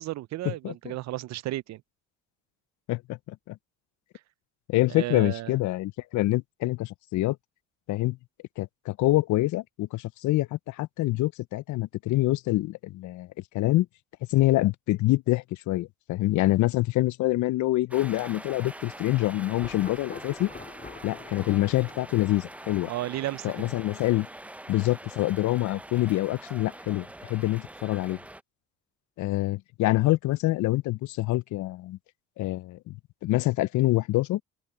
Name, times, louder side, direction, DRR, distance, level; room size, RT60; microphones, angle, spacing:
voice 1, 0.0-1.8 4.9-5.6 22.9-23.7, right 15 dB, 65° right, 0.4 m, -33 dB
voice 2, 2.9-3.6 4.7-7.4 7.9-8.2 8.6-13.3 13.5-13.9 14.3-20.5 21.0-22.9 23.4-24.3 24.7-28.2 29.2-32.0 32.4-34.4, left 17 dB, 75° left, 0.5 m, -26 dB
sound 1, 17.9-28.4, right 1 dB, 5° right, 0.4 m, -44 dB
Thunder, 18.0-23.8, left 4 dB, 30° left, 2.7 m, -47 dB
cardioid pair, 90°, 30 cm